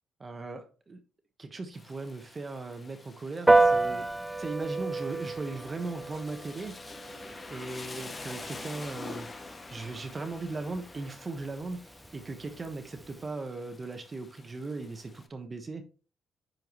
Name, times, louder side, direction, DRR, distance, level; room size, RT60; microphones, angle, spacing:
voice 1, 0.2-1.0 1.4-4.1 4.4-6.8 7.5-9.3 9.7-15.8, right 3 dB, 30° right, 1.2 m, -38 dB
Rain, 1.7-15.3, left 3 dB, 30° left, 0.9 m, -47 dB
Piano, 3.5-13.2, right 2 dB, 15° right, 0.4 m, -31 dB
10.5 x 4.6 x 3.1 m
cardioid pair, 90°, 0 cm